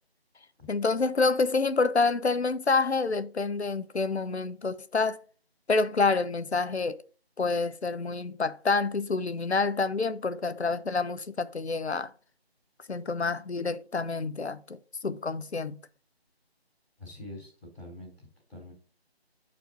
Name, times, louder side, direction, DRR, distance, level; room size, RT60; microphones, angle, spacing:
voice 1, 0.7-5.2 5.7-7.0 7.4-12.1 12.9-15.8, left 4 dB, 90° left, 0.9 m, -28 dB
voice 2, 17.0-18.7, left 1 dB, ahead, 0.8 m, -45 dB
7.7 x 4.5 x 5.4 m
figure-of-eight pair, 165°, 32 cm